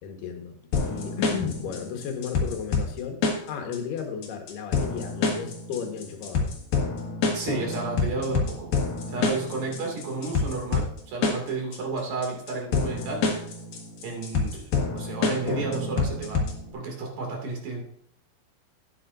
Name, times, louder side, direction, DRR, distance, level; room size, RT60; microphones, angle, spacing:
voice 1, 0.0-3.2 3.5-6.5, left 7 dB, 85° left, 4 dB, 3.4 m, -34 dB
sound 1, 0.7-16.7, left 4 dB, 65° left, 3.4 m, -28 dB
voice 2, 7.3-8.7 9.1-13.3 14.0-16.4 16.7-17.8, right 3 dB, 60° right, 0 dB, 3.9 m, -32 dB
13.0 x 9.9 x 2.6 m, 0.69 s
omnidirectional pair, 4.5 m